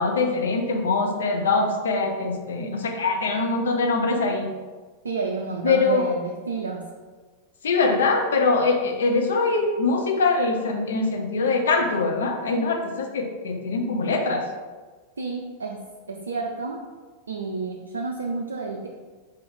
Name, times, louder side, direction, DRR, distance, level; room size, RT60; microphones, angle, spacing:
voice 1, 0.0-4.5 5.6-6.1 7.6-14.4, left 3 dB, 65° left, 3 dB, 0.6 m, -23 dB
voice 2, 5.0-6.9 15.2-15.8 16.1-16.8 17.3-18.9, right 4 dB, 70° right, 1 dB, 0.4 m, -30 dB
4.6 x 3.0 x 3.6 m, 1.4 s
figure-of-eight pair, 90°, 0 cm